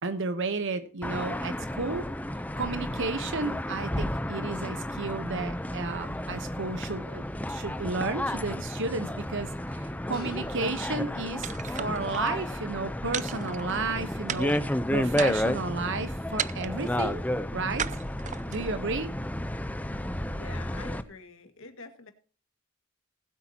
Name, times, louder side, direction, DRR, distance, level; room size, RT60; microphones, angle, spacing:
voice 1, 0.0-14.6 14.9-17.2 17.5-17.9 18.5-19.1, right 3 dB, 60° right, 10 dB, 1.1 m, -33 dB
sound 1, 1.0-21.0, left 1 dB, 5° left, 0.6 m, -32 dB
sound 2, 10.1-11.9, left 4 dB, 50° left, 1.9 m, -52 dB
sound 3, 11.4-12.3 13.1-13.9 14.3-14.7 15.1-15.7 16.4-16.9 17.8-18.7, right 8 dB, 35° right, 0.5 m, -35 dB
voice 2, 20.3-22.1, left 4 dB, 65° left, 6 dB, 2.0 m, -46 dB
19.5 x 8.4 x 2.9 m, 0.43 s
head